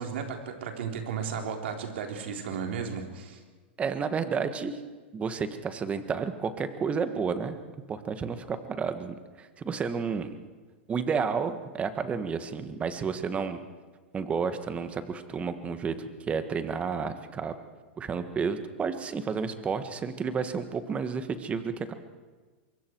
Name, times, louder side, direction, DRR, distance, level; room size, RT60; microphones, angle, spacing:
voice 1, 0.0-3.4, right 6 dB, 70° right, 3 dB, 4.0 m, -34 dB
voice 2, 3.8-4.8 5.1-7.6 7.9-10.4 10.9-13.6 14.1-16.0 16.3-17.5 18.0-21.9, right 5 dB, 20° right, 9 dB, 1.7 m, -31 dB
24.5 x 23.5 x 4.7 m, 1.4 s
hypercardioid pair, 130°, 6 cm